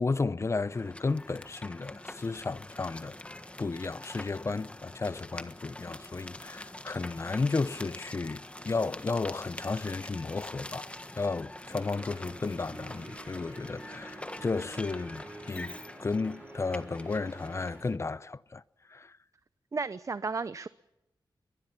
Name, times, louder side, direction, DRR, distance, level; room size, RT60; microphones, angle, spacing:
voice 1, 0.0-10.9 11.2-18.6 18.9-19.1, left 3 dB, 35° left, 0.7 m, -33 dB
sound 1, 0.7-18.0, left 1 dB, 15° left, 1.5 m, -45 dB
sound 2, 11.7-17.8, right 2 dB, 25° right, 5.2 m, -49 dB
voice 2, 19.7-20.7, right 4 dB, 40° right, 0.7 m, -33 dB
23.0 x 20.5 x 5.8 m
wide cardioid pair, 85°, 8 cm